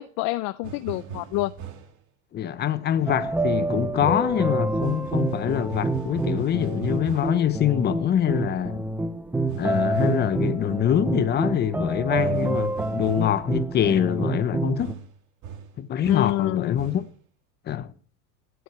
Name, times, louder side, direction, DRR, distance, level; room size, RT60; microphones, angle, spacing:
voice 1, 0.0-1.5 16.1-16.8, left 19 dB, 45° left, 0.6 m, -27 dB
sound 1, 0.6-2.0 4.8-7.5 9.5-10.4 12.1-13.4 14.8-16.5 16.8-17.2, right 8 dB, 45° right, 2.9 m, -40 dB
voice 2, 2.3-8.8 9.6-15.0 15.8-17.1 17.7-17.9, left 9 dB, 25° left, 0.9 m, -24 dB
sound 2, 3.1-14.9, right 2 dB, 5° right, 0.5 m, -27 dB
15.5 x 6.3 x 8.1 m
supercardioid pair, 130°, 41 cm